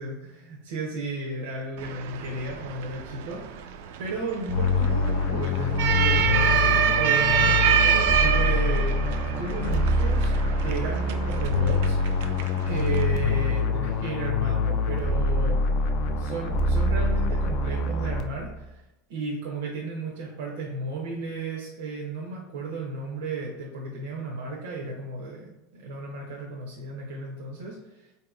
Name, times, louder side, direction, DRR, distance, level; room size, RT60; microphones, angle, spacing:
voice 1, 0.0-3.7 4.0-8.9 9.4-10.3 10.6-12.3 12.7-15.6 16.1-18.8 19.1-28.1, right 3 dB, 90° right, -2 dB, 0.7 m, -34 dB
sound 1, 1.8-13.0, right 8 dB, 60° right, 0.3 m, -26 dB
sound 2, 4.5-18.6, left 2 dB, 35° left, 0.3 m, -25 dB
4.2 x 2.8 x 2.3 m, 0.99 s
supercardioid pair, 175°, 0 cm